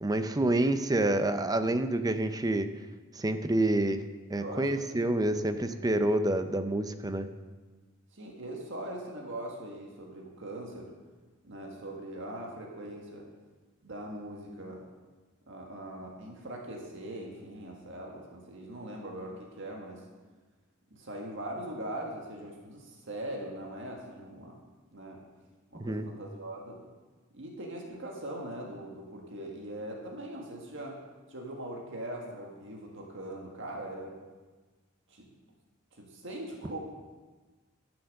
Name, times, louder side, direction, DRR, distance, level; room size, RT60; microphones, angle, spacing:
voice 1, 0.0-2.7 3.1-4.0 4.3-7.3 25.7-26.1, right 1 dB, 15° right, 9 dB, 0.6 m, -28 dB
voice 2, 4.3-5.9 8.1-10.9 11.4-13.3 13.8-14.8 15.5-20.0 20.9-24.6 24.9-25.2 25.7-26.8 27.3-31.0 31.3-34.2 35.1-35.3 35.9-36.8, right 1 dB, 60° right, 0 dB, 1.7 m, -41 dB
12.5 x 7.1 x 6.6 m, 1.3 s
head